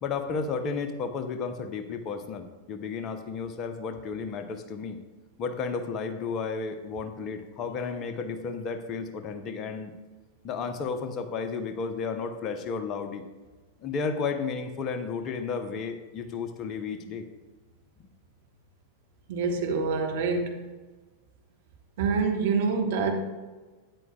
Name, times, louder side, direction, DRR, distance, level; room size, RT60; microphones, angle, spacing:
voice 1, 0.0-5.0 5.4-9.9 10.4-13.2 13.8-17.2 18.0-18.1, left 5 dB, 30° left, 7 dB, 0.9 m, -33 dB
voice 2, 19.3-20.6 22.0-23.1, right 4 dB, 55° right, 3 dB, 1.4 m, -26 dB
12.5 x 9.6 x 2.4 m, 1.3 s
figure-of-eight pair, 90°, 0 cm